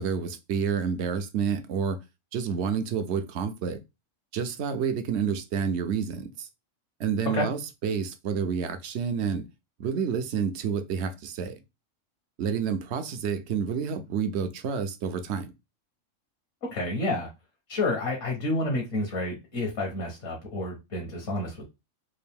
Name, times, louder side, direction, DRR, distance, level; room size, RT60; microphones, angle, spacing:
voice 1, 0.0-2.0 2.3-3.8 4.3-6.5 7.0-9.5 9.8-11.6 12.4-15.5, right 6 dB, 65° right, 0.8 m, -29 dB
voice 2, 16.6-17.3 17.7-21.6, left 2 dB, 65° left, 1.4 m, -29 dB
3.7 x 2.5 x 3.4 m
omnidirectional pair, 1.4 m